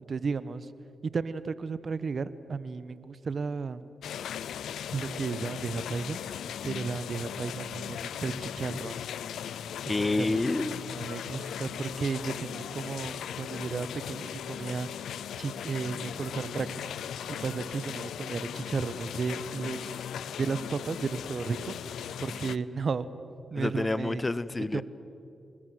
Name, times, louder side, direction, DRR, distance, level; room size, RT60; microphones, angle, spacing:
voice 1, 0.1-0.7 1.0-3.8 4.9-6.2 6.6-9.0 10.2-10.4 10.9-15.1 15.4-17.0 17.3-20.1 20.4-21.8 22.2-23.1 23.5-24.2 24.7-24.8, right 5 dB, 55° right, 15 dB, 1.1 m, -34 dB
sound 1, 4.0-22.6, left 9 dB, 85° left, 0.5 m, -38 dB
voice 2, 9.9-10.7 23.5-24.8, left 2 dB, 25° left, 17 dB, 1.0 m, -28 dB
28.5 x 20.5 x 7.9 m, 2.8 s
cardioid pair, 55°, 0 cm